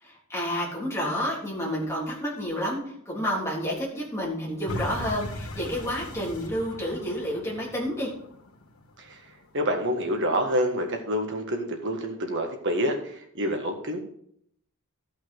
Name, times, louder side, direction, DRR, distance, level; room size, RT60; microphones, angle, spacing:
voice 1, 0.0-8.1, equal, 10° left, -5 dB, 3.4 m, -30 dB
sound 1, 4.7-9.7 10.2-10.3, left 1 dB, 70° left, 1.6 m, -38 dB
voice 2, 9.5-14.0, equal, 55° right, 4 dB, 1.8 m, -27 dB
13.5 x 5.7 x 4.8 m, 0.65 s
head